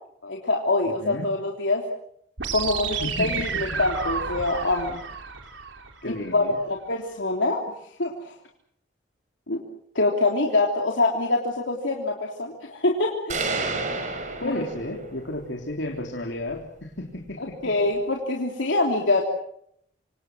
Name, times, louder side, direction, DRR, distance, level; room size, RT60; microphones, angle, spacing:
voice 1, 0.2-1.8 2.5-5.0 6.0-6.4 6.7-7.6 8.0-8.3 9.5-9.6 10.0-13.4 14.6-14.7 17.6-19.2, left 2 dB, 90° left, 0 dB, 3.4 m, -25 dB
voice 2, 0.9-1.3 2.9-3.8 6.0-6.6 14.4-17.7, left 1 dB, 70° left, 2 dB, 3.5 m, -33 dB
sound 1, 2.4-6.4, right 6 dB, 85° right, 3.2 m, -31 dB
sound 2, 13.3-15.3, right 3 dB, 40° right, 5.6 m, -30 dB
27.5 x 26.0 x 6.3 m, 0.71 s
head